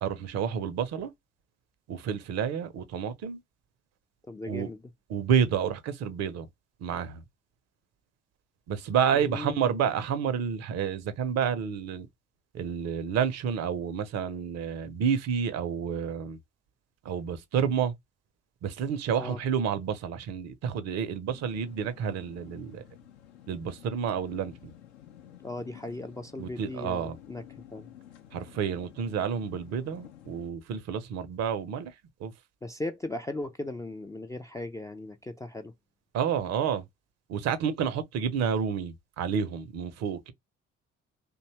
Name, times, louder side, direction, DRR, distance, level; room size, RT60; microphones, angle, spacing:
voice 1, 0.0-1.1 1.9-3.4 4.5-4.7 5.1-6.5 6.8-7.2 8.7-12.1 12.5-16.4 17.0-17.9 18.6-22.8 23.5-24.7 26.4-27.2 28.3-32.3 36.1-36.8 37.3-40.3, right 7 dB, 50° right, 0.6 m, -29 dB
voice 2, 4.3-4.8 9.3-9.7 19.2-19.4 25.4-27.4 27.7-27.9 32.6-35.7, left 2 dB, 10° left, 0.3 m, -37 dB
sound 1, 21.3-30.5, left 11 dB, 70° left, 0.6 m, -52 dB
2.6 x 2.2 x 2.9 m
figure-of-eight pair, 45°, 35 cm